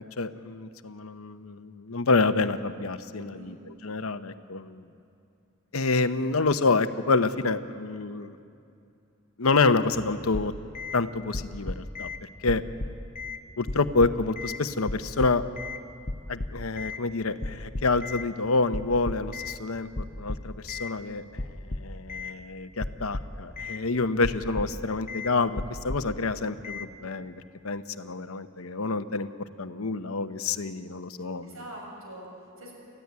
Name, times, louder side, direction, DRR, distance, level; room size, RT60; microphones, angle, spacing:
voice 1, 0.0-3.6 3.8-4.8 5.7-8.3 9.4-10.5 10.9-12.1 12.4-12.6 13.6-15.4 16.3-19.9 20.2-21.2 21.6-29.3 29.6-31.5, left 3 dB, 85° left, 10 dB, 1.0 m, -27 dB
voice 2, 3.2-3.5 31.4-32.7, right 1 dB, 75° right, -1 dB, 7.1 m, -44 dB
sound 1, 10.3-11.0 11.3-12.2 12.5-13.4 13.7-14.6 14.9-15.8 16.1-17.0 17.4-18.3 18.7-19.6 20.0-20.9 21.4-22.3 22.8-23.8 24.2-24.8 25.1-25.3 25.6-26.2 26.6-26.9, left 2 dB, 35° left, 1.0 m, -34 dB
29.5 x 14.5 x 9.6 m, 2.6 s
head